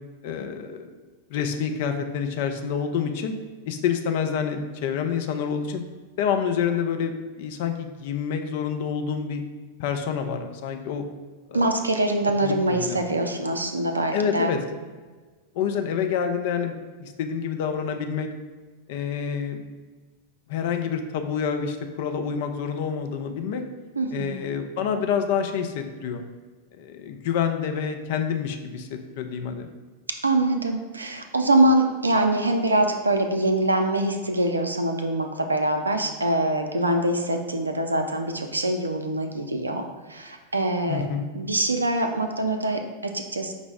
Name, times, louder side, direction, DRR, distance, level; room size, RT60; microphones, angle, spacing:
voice 1, 0.2-0.9 1.3-3.3 3.7-5.8 6.2-9.4 9.8-11.0 11.5-11.7 12.4-13.0 14.1-14.6 15.5-18.3 18.9-19.6 20.5-23.6 24.1-26.2 26.8-29.7 40.9-41.3, left 7 dB, 50° left, 5 dB, 0.4 m, -27 dB
voice 2, 11.5-14.5 24.0-24.4 30.2-41.1 41.3-43.5, right 1 dB, 80° right, 5 dB, 0.4 m, -24 dB
5.3 x 2.0 x 4.6 m, 1.4 s
figure-of-eight pair, 90°, 0 cm